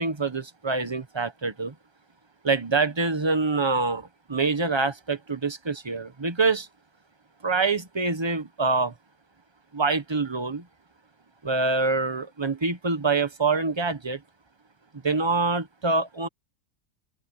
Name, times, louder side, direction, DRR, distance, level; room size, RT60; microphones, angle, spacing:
voice 1, 0.0-1.7 2.4-6.7 7.4-8.9 9.7-10.6 11.4-14.2 15.0-16.3, right 3 dB, 20° right, 1.1 m, -25 dB
open air
omnidirectional pair, 1.6 m